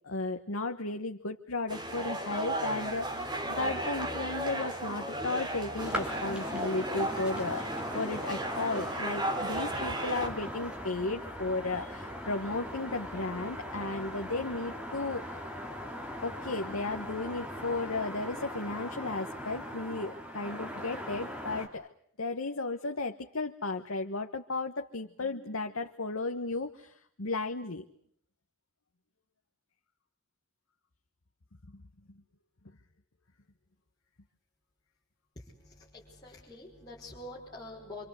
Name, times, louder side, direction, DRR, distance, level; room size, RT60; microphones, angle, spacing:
voice 1, 0.0-7.7 7.9-15.4 16.2-21.9 22.2-27.8 31.7-31.8, left 3 dB, 85° left, 5 dB, 1.3 m, -34 dB
sound 1, 1.7-10.3, right 1 dB, 20° right, 3.3 m, -35 dB
sound 2, 5.8-21.7, equal, 5° right, 3.6 m, -40 dB
voice 2, 35.4-38.1, left 1 dB, 20° left, -5 dB, 5.5 m, -46 dB
26.5 x 26.0 x 8.2 m, 0.66 s
head